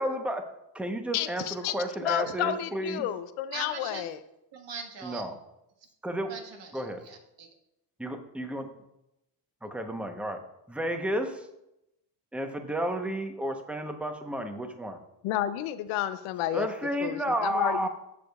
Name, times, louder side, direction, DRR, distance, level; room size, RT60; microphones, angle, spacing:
voice 1, 0.0-3.1 5.0-5.4 6.0-6.3 6.7-7.0 8.0-8.7 9.6-10.4 10.7-11.5 12.3-15.0 16.5-17.9, right 1 dB, 5° right, 5 dB, 0.9 m, -32 dB
voice 2, 1.1-1.7 2.0-4.2 15.2-16.7 17.0-17.9, left 12 dB, 80° left, 13 dB, 0.6 m, -31 dB
voice 3, 3.5-4.0 4.5-5.2 6.3-7.5, right 5 dB, 60° right, 2 dB, 1.7 m, -41 dB
14.0 x 5.0 x 2.4 m, 0.85 s
cardioid pair, 85°, 49 cm